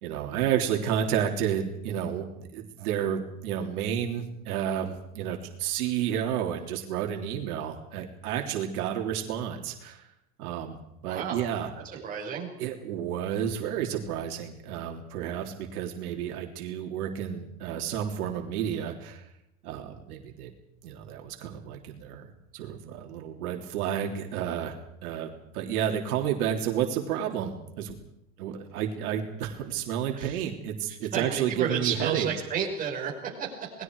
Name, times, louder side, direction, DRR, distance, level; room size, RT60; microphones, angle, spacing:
voice 1, 0.0-10.1 10.4-10.8 11.0-11.7 12.6-19.3 19.6-20.5 20.8-24.8 25.0-28.0 28.4-32.3, right 9 dB, 75° right, 2 dB, 3.5 m, -31 dB
voice 2, 11.0-11.4 12.0-12.5 30.1-30.4 30.9-33.7, right 7 dB, 20° right, -2 dB, 5.3 m, -32 dB
28.5 x 20.5 x 4.8 m, 0.81 s
supercardioid pair, 170°, 45 cm